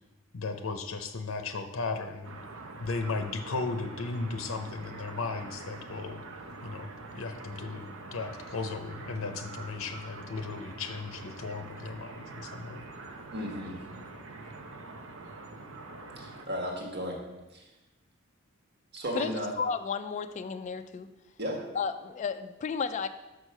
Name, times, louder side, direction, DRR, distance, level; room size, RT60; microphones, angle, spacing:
voice 1, 0.3-2.4 2.8-6.2 6.6-12.9, left 4 dB, 75° left, 7 dB, 0.6 m, -36 dB
sound 1, 2.2-16.5, right 3 dB, 85° right, 0.8 m, -45 dB
voice 2, 13.3-13.8 16.2-17.2 17.5-17.6 18.9-19.5 21.4-21.6, equal, 55° right, 0 dB, 1.5 m, -34 dB
voice 3, 19.6-21.1 21.7-23.1, left 5 dB, 35° left, 9 dB, 0.3 m, -32 dB
6.4 x 4.8 x 6.4 m, 1.1 s
head